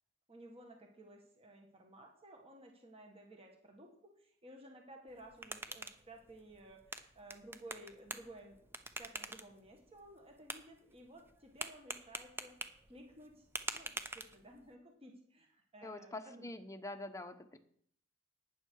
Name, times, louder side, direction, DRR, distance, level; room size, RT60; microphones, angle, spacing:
voice 1, 0.3-16.4, right 1 dB, 25° right, 2 dB, 1.8 m, -56 dB
sound 1, 5.1-14.7, right 2 dB, 10° right, 0.7 m, -47 dB
voice 2, 15.8-17.6, left 2 dB, 15° left, 6 dB, 0.9 m, -45 dB
12.0 x 9.4 x 4.7 m, 0.65 s
head